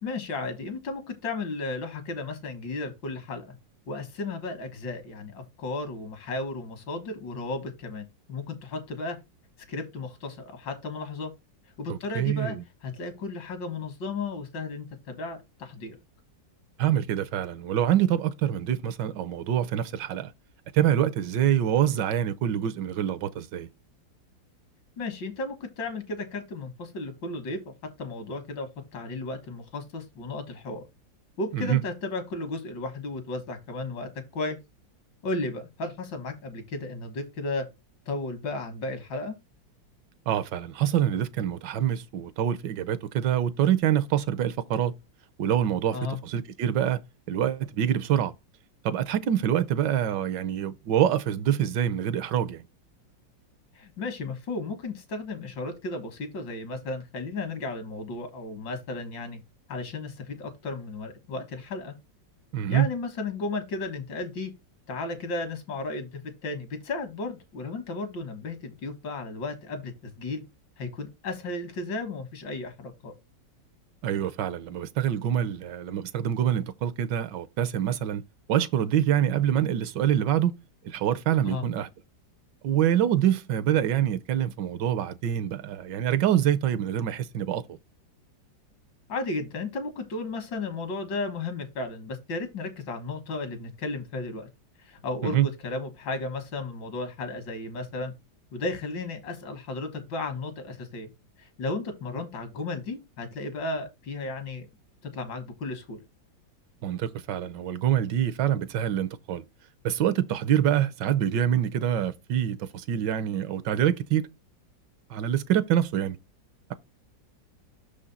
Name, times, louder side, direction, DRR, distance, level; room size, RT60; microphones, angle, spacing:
voice 1, 0.0-3.6 3.9-9.2 9.7-11.3 11.8-12.6 12.8-16.0 25.0-27.6 28.0-30.8 31.4-34.6 35.2-37.6 38.1-39.4 45.9-46.2 53.8-59.4 59.7-61.9 62.7-64.5 64.9-70.4 70.8-73.1 81.4-81.7 89.1-94.5 94.8-98.1 98.5-101.1 101.4-104.7 105.1-106.0, left 3 dB, 75° left, 2.1 m, -34 dB
voice 2, 11.9-12.6 16.8-20.3 20.7-23.7 31.5-31.8 40.3-44.9 45.4-47.0 47.3-48.3 48.8-52.6 62.5-62.9 74.0-78.2 78.5-80.5 80.8-81.9 82.6-87.6 95.2-95.5 106.8-109.4 109.8-114.3 115.1-116.2, right 10 dB, 75° right, 1.2 m, -25 dB
6.3 x 5.0 x 4.0 m
omnidirectional pair, 2.1 m